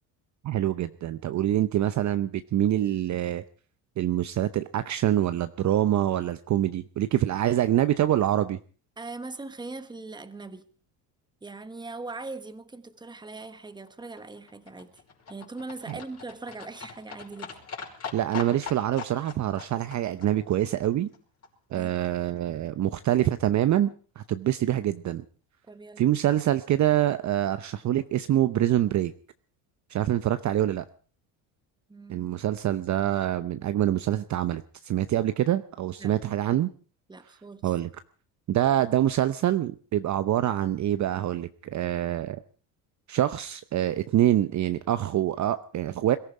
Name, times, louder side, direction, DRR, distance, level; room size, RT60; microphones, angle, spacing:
voice 1, 0.4-3.4 4.0-8.6 15.9-16.0 18.1-21.1 21.7-23.9 24.2-25.2 26.0-29.1 29.9-30.9 32.1-36.7 37.6-37.9 38.5-42.4 43.1-46.2, right 12 dB, 40° right, 0.8 m, -25 dB
voice 2, 9.0-10.7 11.4-15.0 15.3-17.6 21.7-22.0 25.7-26.1 31.9-32.3 36.0-36.1 37.1-37.7 40.5-40.6, right 3 dB, 10° right, 1.3 m, -40 dB
Livestock farm animals working animals, 13.6-21.8 22.0-22.1 22.4-22.5 22.7-22.8 23.0-23.1 23.3-23.4 23.6-23.7 23.9-24.0 24.2-24.3, left 5 dB, 35° left, 5.5 m, -42 dB
22.0 x 14.0 x 4.8 m
cardioid pair, 115°, 44 cm